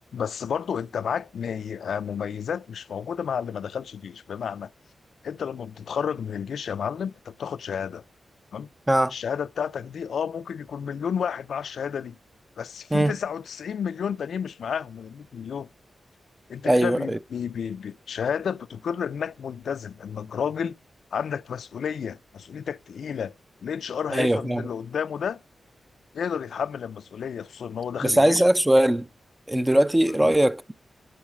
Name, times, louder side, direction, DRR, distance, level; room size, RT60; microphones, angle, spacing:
voice 1, 0.1-4.7 5.2-8.0 8.5-8.7 9.1-12.2 12.6-15.7 16.5-20.8 21.1-23.3 23.6-25.4 26.1-28.4 30.1-30.3, left 7 dB, 80° left, 0.4 m, -31 dB
voice 2, 16.6-17.2 24.1-24.7 28.0-29.1 29.5-30.7, right 1 dB, 10° right, 0.4 m, -20 dB
12.0 x 4.0 x 7.5 m
wide cardioid pair, 130°, 0 cm